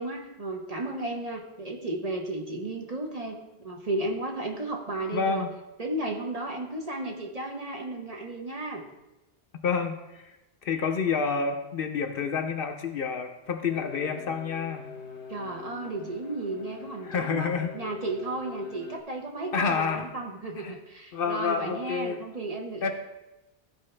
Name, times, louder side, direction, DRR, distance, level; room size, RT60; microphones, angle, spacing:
voice 1, 0.0-5.5 5.8-8.8 15.3-22.9, right 2 dB, 40° right, 1 dB, 0.9 m, -34 dB
voice 2, 5.1-5.5 9.6-10.3 10.6-14.9 17.0-17.7 19.5-20.1 20.6-20.7 21.1-22.2 22.8-22.9, left 5 dB, 60° left, 6 dB, 0.8 m, -29 dB
sound 1, 13.7-19.0, left 6 dB, 85° left, 1.1 m, -44 dB
13.5 x 4.6 x 3.2 m, 0.99 s
omnidirectional pair, 1.1 m